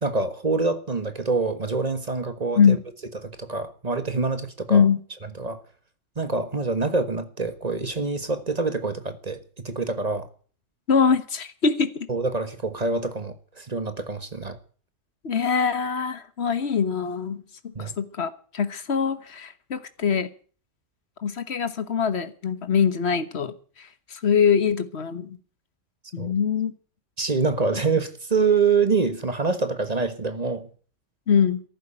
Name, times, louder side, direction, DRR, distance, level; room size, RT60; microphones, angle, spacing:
voice 1, 0.0-2.8 3.4-4.8 5.4-5.6 6.2-9.4 9.6-10.3 12.1-14.6 17.7-17.9 26.2-26.3 27.2-30.7, right 4 dB, 35° right, 1.5 m, -25 dB
voice 2, 4.7-5.0 10.9-12.1 15.2-20.3 21.2-25.4 26.1-26.7 31.3-31.6, left 6 dB, 60° left, 1.6 m, -23 dB
14.0 x 11.5 x 8.8 m
omnidirectional pair, 1.3 m